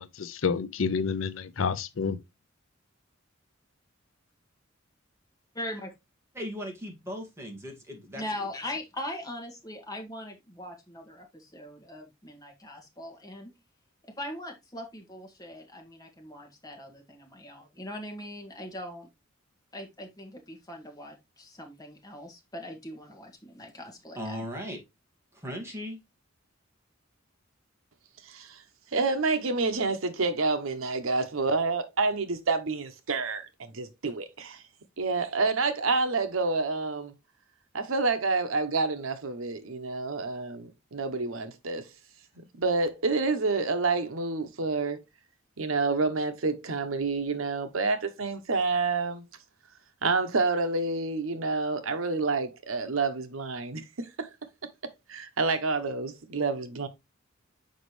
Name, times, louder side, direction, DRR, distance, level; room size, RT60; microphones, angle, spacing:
voice 1, 0.0-2.2, left 5 dB, 70° left, 0.6 m, -29 dB
voice 2, 5.5-5.9 8.1-13.5 14.2-19.1 19.7-24.4, left 1 dB, 20° left, 1.9 m, -40 dB
voice 3, 6.3-8.2 24.1-24.8 25.4-26.0, equal, 15° right, 2.0 m, -37 dB
voice 4, 28.3-28.6 28.9-34.6 35.0-37.1 37.7-41.9 42.4-45.0 45.6-49.3 50.0-54.3 55.1-56.9, right 3 dB, 85° right, 0.9 m, -28 dB
6.5 x 5.2 x 3.2 m
head